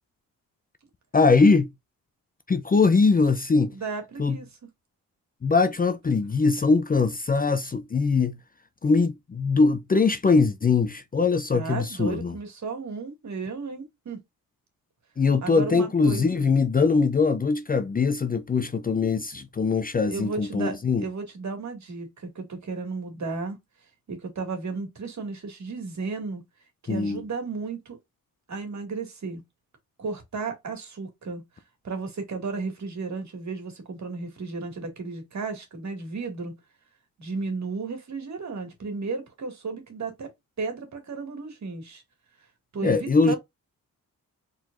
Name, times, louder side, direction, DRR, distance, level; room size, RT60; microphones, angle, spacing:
voice 1, 1.1-1.7 2.5-3.7 4.2-4.4 5.4-8.4 8.8-12.3 15.2-21.0 26.9-27.2 42.8-43.3, left 4 dB, 25° left, 0.5 m, -22 dB
voice 2, 3.7-4.5 11.5-14.2 15.4-16.5 20.1-23.6 24.1-26.4 26.8-28.0 28.5-29.4 30.0-31.4 31.8-36.6 37.2-40.3 40.6-42.0 42.7-43.4, right 4 dB, 55° right, 2.1 m, -34 dB
4.5 x 4.0 x 2.5 m
cardioid pair, 90°, 34 cm